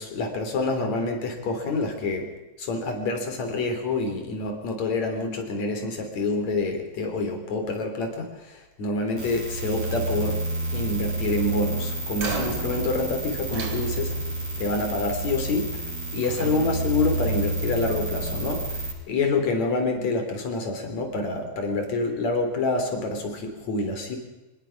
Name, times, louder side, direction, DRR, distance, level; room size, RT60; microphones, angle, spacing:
voice 1, 0.0-2.3 2.6-14.2 14.6-24.2, left 3 dB, 70° left, 5 dB, 4.5 m, -27 dB
sound 1, 9.2-18.9, right 2 dB, 50° right, 7.2 m, -30 dB
sound 2, 12.1-14.4 15.5-15.9 16.2-18.0, right 3 dB, 70° right, 4.0 m, -36 dB
25.0 x 20.0 x 5.9 m, 1.1 s
omnidirectional pair, 3.3 m